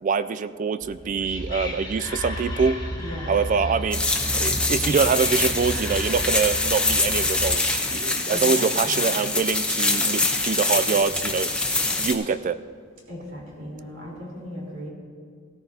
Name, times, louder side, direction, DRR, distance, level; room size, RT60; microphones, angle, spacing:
voice 1, 0.0-2.8 3.3-4.0 4.4-11.5 12.0-12.6, right 5 dB, 40° right, 13 dB, 0.3 m, -24 dB
Whispering, 0.8-7.7, equal, 20° left, 1.7 m, -33 dB
voice 2, 3.0-3.3 8.3-9.0 13.1-14.9, equal, 80° right, -3 dB, 3.8 m, -37 dB
sound 1, 3.9-12.1, left 2 dB, 5° left, 1.0 m, -24 dB
17.0 x 13.5 x 2.8 m, 2.1 s
head